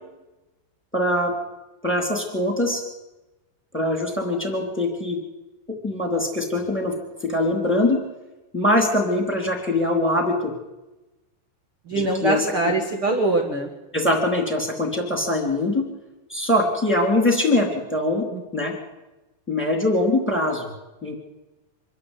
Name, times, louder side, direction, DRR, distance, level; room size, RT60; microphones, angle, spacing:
voice 1, 0.9-1.3 1.8-2.8 3.7-5.2 5.8-6.9 7.2-8.0 8.5-10.5 11.9-12.5 13.9-15.9 16.3-18.3 18.5-18.7 19.5-20.7 21.0-21.1, left 1 dB, 5° left, 1 dB, 2.5 m, -22 dB
voice 2, 11.9-13.7 18.3-18.4, right 2 dB, 60° right, 1 dB, 1.4 m, -23 dB
25.0 x 12.5 x 8.3 m, 1.1 s
omnidirectional pair, 5.7 m